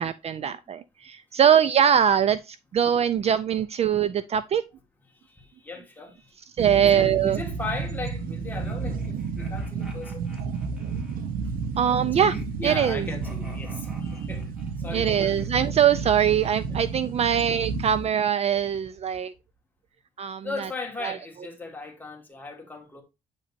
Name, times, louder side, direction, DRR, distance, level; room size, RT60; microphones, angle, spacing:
voice 1, 0.0-4.6 6.6-7.4 11.8-12.4 12.6-13.1 14.9-19.3 20.2-20.7 21.0-21.2, right 8 dB, 45° right, 0.4 m, -22 dB
voice 2, 5.1-6.4 6.8-10.3 11.6-12.2 12.6-15.5 16.7-16.8 17.3-17.5 20.4-23.0, left 3 dB, 10° left, 1.7 m, -38 dB
sound 1, 6.6-18.1, right 5 dB, 65° right, 0.9 m, -32 dB
sound 2, 8.5-11.2 12.1-14.7, left 1 dB, 5° right, 2.3 m, -45 dB
8.3 x 5.0 x 2.6 m
cardioid pair, 125°, 15 cm